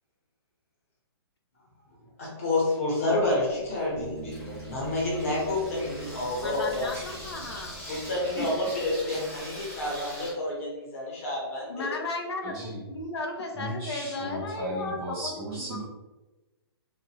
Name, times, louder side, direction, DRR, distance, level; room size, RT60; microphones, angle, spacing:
voice 1, 2.2-6.9 7.9-11.9, left 2 dB, 35° left, -5 dB, 1.0 m, -29 dB
Water tap faucet / Sink (filling or washing), 3.2-10.3, equal, 10° left, 0.9 m, -43 dB
sound 1, 4.0-8.9, right 3 dB, 85° right, 0.4 m, -45 dB
voice 2, 6.4-7.8 11.7-15.3 15.6-15.8, left 3 dB, 80° left, 2 dB, 0.6 m, -35 dB
voice 3, 7.9-8.5 9.6-9.7 12.4-12.8 13.5-15.8, equal, 10° right, -10 dB, 0.3 m, -36 dB
2.7 x 2.5 x 2.9 m, 1.1 s
hypercardioid pair, 180°, 13 cm